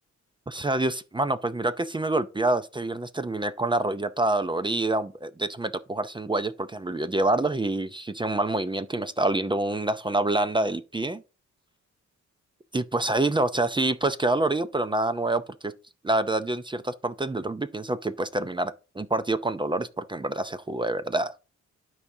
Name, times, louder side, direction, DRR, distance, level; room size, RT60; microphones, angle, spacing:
voice 1, 0.5-11.2 12.7-15.7 16.0-21.4, right 2 dB, 15° right, 0.5 m, -27 dB
12.0 x 4.8 x 2.7 m
cardioid pair, 85°, 29 cm